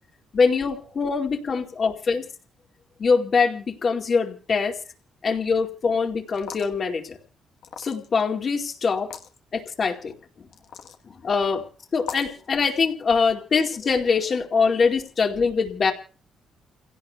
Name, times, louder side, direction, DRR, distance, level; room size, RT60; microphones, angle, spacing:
voice 1, 0.3-2.2 3.0-4.8 5.2-7.2 7.8-9.1 9.5-10.1 11.2-11.6 11.9-15.9, left 5 dB, 45° left, 3 dB, 2.3 m, -23 dB
sound 1, 6.3-6.8 7.6-8.2 9.0-9.3 10.5-11.0 12.0-12.4, left 8 dB, 80° left, 1.2 m, -38 dB
29.0 x 17.0 x 2.3 m, 0.38 s
cardioid pair, 90°, 0 cm